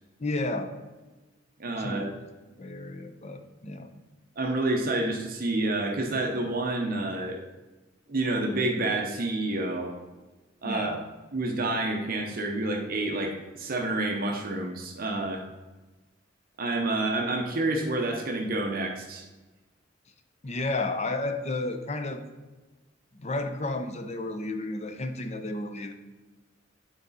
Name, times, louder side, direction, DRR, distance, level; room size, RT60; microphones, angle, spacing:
voice 1, 0.2-0.7 1.8-2.1 2.6-3.9 10.6-11.0 20.4-22.2 23.1-25.9, left 2 dB, 35° left, 7 dB, 0.6 m, -32 dB
voice 2, 1.6-2.1 4.4-7.4 8.1-10.0 10.6-11.0 11.3-15.4 16.6-19.3, right 2 dB, 50° right, 1 dB, 0.8 m, -28 dB
9.2 x 4.0 x 4.1 m, 1.2 s
head